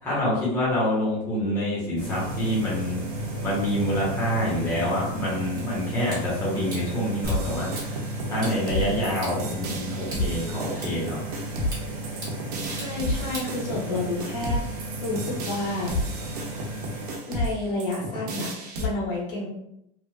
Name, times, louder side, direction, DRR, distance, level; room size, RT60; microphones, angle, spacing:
voice 1, 0.0-3.0 3.4-11.2, equal, 15° left, -8 dB, 1.0 m, -27 dB
sound 1, 2.0-17.2, right 1 dB, 50° right, 0.9 m, -34 dB
sound 2, 5.6-14.2, right 1 dB, 20° right, 1.0 m, -44 dB
sound 3, 7.2-18.9, equal, 85° right, 0.8 m, -32 dB
voice 2, 12.6-15.9 17.3-19.5, left 2 dB, 85° left, -5 dB, 1.4 m, -30 dB
3.1 x 2.4 x 2.3 m, 0.80 s
supercardioid pair, 165°, 20 cm